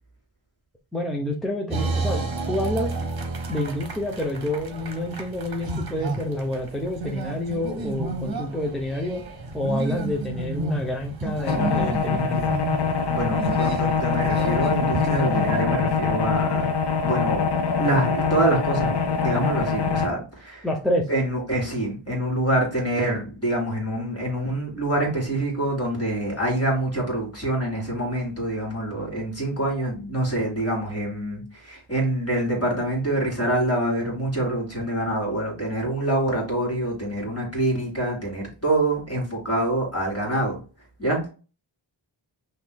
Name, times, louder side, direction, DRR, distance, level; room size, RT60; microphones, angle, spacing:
voice 1, 0.9-2.9 3.5-9.2 9.5-12.5 20.6-21.1, left 1 dB, ahead, 0 dB, 0.7 m, -28 dB
sound 1, 1.7-15.6, right 3 dB, 50° right, 0.9 m, -31 dB
sound 2, 11.4-20.1, left 5 dB, 55° left, 0.6 m, -24 dB
voice 2, 13.1-16.7 17.0-17.5 17.8-20.7 21.1-40.6 41.0-41.3, right 1 dB, 30° left, 0 dB, 2.1 m, -26 dB
5.8 x 2.7 x 2.2 m, 0.34 s
wide cardioid pair, 70°, 48 cm